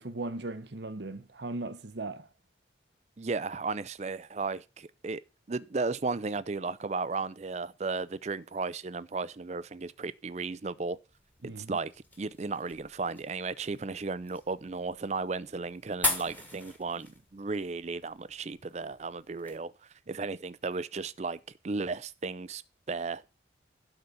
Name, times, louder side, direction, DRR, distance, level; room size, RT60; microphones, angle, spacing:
voice 1, 0.0-2.3 11.4-11.8 20.1-20.2, right 2 dB, 65° right, 0.9 m, -38 dB
voice 2, 3.2-5.2 5.5-11.0 11.4-11.9 12.2-17.1 17.3-19.7 20.1-22.6 22.9-23.2, right 4 dB, 35° right, 0.5 m, -34 dB
sound 1, 11.1-19.6, left 2 dB, 10° left, 1.5 m, -40 dB
12.0 x 4.0 x 7.0 m
head